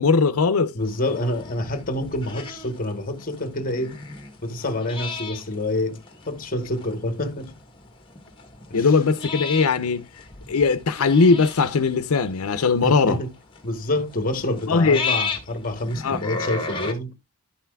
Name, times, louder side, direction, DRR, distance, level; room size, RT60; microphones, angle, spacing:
voice 1, 0.0-0.7 8.7-10.1 10.5-13.2 14.7-15.0 16.0-16.2, left 4 dB, 90° left, 0.6 m, -19 dB
voice 2, 0.7-4.0 4.4-7.6 8.7-8.9 12.8-13.3 13.6-17.2, left 1 dB, 40° left, 1.0 m, -27 dB
sound 1, 0.8-16.9, left 4 dB, 25° left, 1.4 m, -35 dB
11.5 x 5.7 x 2.2 m
head